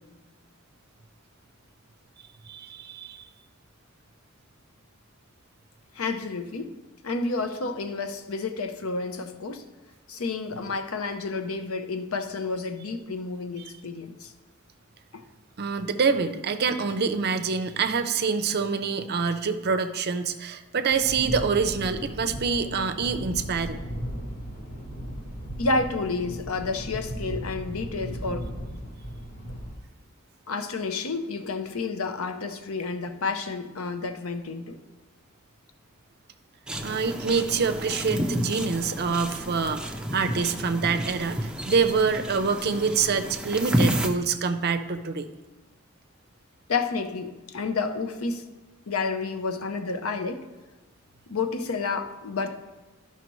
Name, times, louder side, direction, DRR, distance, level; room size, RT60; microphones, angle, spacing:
voice 1, 2.5-3.2 15.6-23.8 36.8-45.3, right 5 dB, 50° right, 9 dB, 0.5 m, -26 dB
voice 2, 5.9-6.8 7.0-9.6 10.1-14.3 15.1-15.2 25.6-28.5 30.5-34.8 46.7-48.5 48.9-50.5 51.3-52.6, left 4 dB, 75° left, 9 dB, 0.7 m, -30 dB
sound 1, 20.9-29.8, equal, 40° left, 1.2 m, -36 dB
sound 2, 36.7-44.1, equal, 5° right, 0.5 m, -30 dB
12.5 x 5.7 x 3.0 m, 1.1 s
head